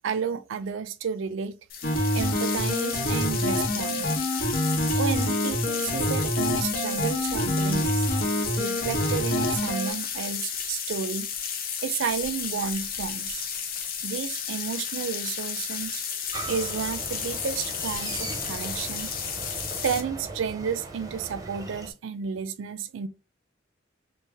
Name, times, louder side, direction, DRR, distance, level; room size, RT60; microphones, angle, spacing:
voice 1, 0.0-1.6 2.1-4.1 5.0-8.1 8.6-11.3 11.8-13.5 14.0-16.0 16.5-19.1 19.8-23.1, right 6 dB, 75° right, 0.4 m, -31 dB
sound 1, 1.7-20.0, left 7 dB, 50° left, 0.6 m, -33 dB
sound 2, 1.8-9.9, equal, 85° left, 1.2 m, -26 dB
sound 3, 16.3-21.9, right 3 dB, 20° right, 0.5 m, -39 dB
3.2 x 2.4 x 3.4 m
head